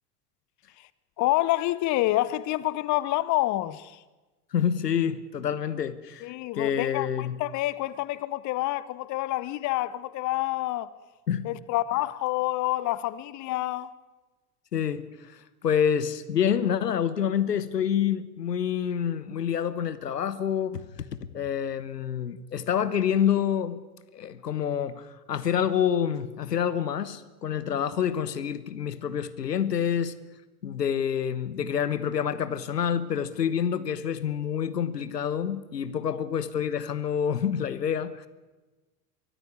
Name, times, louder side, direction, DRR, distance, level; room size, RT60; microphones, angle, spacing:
voice 1, 1.2-4.0 6.2-10.9 11.4-13.9 36.1-36.2, left 16 dB, 35° left, 0.9 m, -28 dB
voice 2, 4.5-7.4 11.3-11.5 14.7-21.1 21.3-23.8 24.1-30.2 30.6-38.3, left 8 dB, 80° left, 1.2 m, -27 dB
23.5 x 15.0 x 9.7 m
figure-of-eight pair, 75°, 47 cm